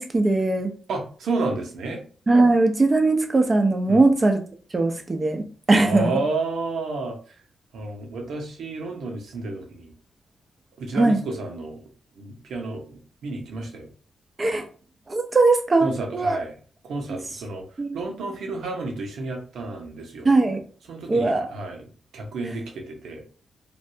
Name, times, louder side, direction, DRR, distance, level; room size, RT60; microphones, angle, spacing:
voice 1, 0.0-0.7 2.3-4.4 4.7-6.1 10.9-11.2 14.4-14.7 15.1-16.4 17.1-17.2 17.8-18.0 20.2-20.6 21.1-21.5 22.4-22.5, right 2 dB, 30° right, 5 dB, 0.6 m, -20 dB
voice 2, 0.9-2.0 3.9-4.1 5.8-7.1 7.7-9.9 10.8-11.8 12.2-13.9 15.8-16.5 16.8-17.7 17.9-20.3 20.9-21.8 22.1-23.2, right 3 dB, 90° right, 3 dB, 0.9 m, -31 dB
3.2 x 2.5 x 2.7 m, 0.41 s
cardioid pair, 105°, 0 cm